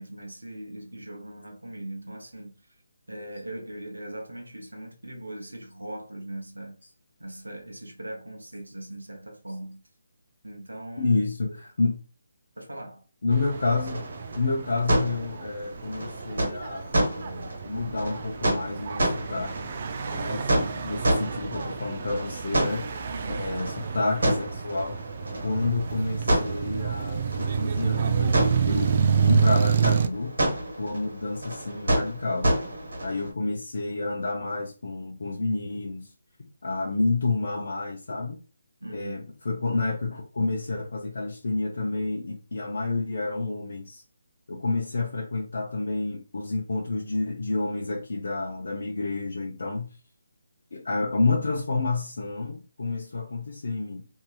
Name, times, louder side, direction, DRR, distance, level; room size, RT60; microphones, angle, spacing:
voice 1, 0.0-2.5 3.1-6.8 7.2-9.8 10.4-11.2 12.6-13.0 23.1-23.5 28.6-29.2 38.8-39.2, right 1 dB, 90° right, 0.8 m, -40 dB
voice 2, 11.0-12.0 13.2-19.8 20.0-22.9 23.4-25.0 25.4-28.4 28.7-30.4 30.8-32.5 33.0-36.1 36.6-38.4 38.9-44.0 44.5-49.9 50.7-54.0, left 3 dB, 60° left, 0.6 m, -29 dB
sound 1, 13.3-30.1, right 6 dB, 45° right, 0.3 m, -29 dB
sound 2, 13.5-33.3, right 1 dB, 65° right, 1.2 m, -30 dB
2.8 x 2.7 x 2.3 m
figure-of-eight pair, 150°, 0 cm